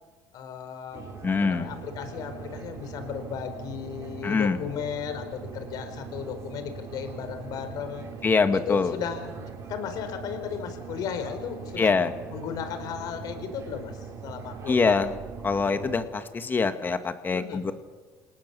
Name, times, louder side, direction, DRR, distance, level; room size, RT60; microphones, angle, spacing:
voice 1, 0.3-8.1 8.5-11.9 12.3-15.0 17.3-17.7, left 8 dB, 65° left, 8 dB, 4.7 m, -35 dB
sound 1, 0.9-16.1, right 6 dB, 40° right, 5.2 m, -41 dB
voice 2, 1.2-1.7 4.2-4.6 8.2-8.9 11.8-12.1 14.7-15.1 15.4-17.7, left 4 dB, 25° left, 9 dB, 2.1 m, -24 dB
27.5 x 19.0 x 7.1 m, 1.3 s
supercardioid pair, 95°, 7 cm